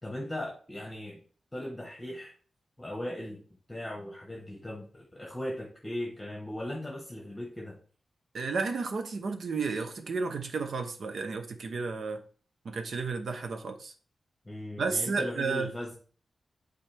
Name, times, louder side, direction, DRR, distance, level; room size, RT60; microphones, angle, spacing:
voice 1, 0.0-1.2 1.5-2.3 2.8-3.4 3.7-7.8 14.4-15.9, left 1 dB, 10° left, 1.2 m, -38 dB
voice 2, 8.3-12.2 12.6-13.9 14.8-15.7, right 4 dB, 70° right, 0.9 m, -32 dB
8.6 x 4.0 x 3.5 m
wide cardioid pair, 120°, 0 cm